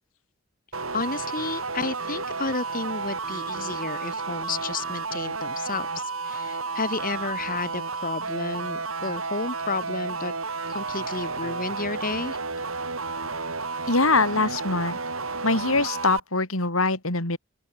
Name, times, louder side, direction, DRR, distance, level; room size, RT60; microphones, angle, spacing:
sound 1, 0.7-16.2, right 4 dB, 80° right, 8.0 m, -32 dB
voice 1, 0.9-10.3 10.7-12.4, left 3 dB, 45° left, 3.0 m, -32 dB
voice 2, 13.9-15.0 15.4-17.4, left 3 dB, 85° left, 5.3 m, -23 dB
open air
head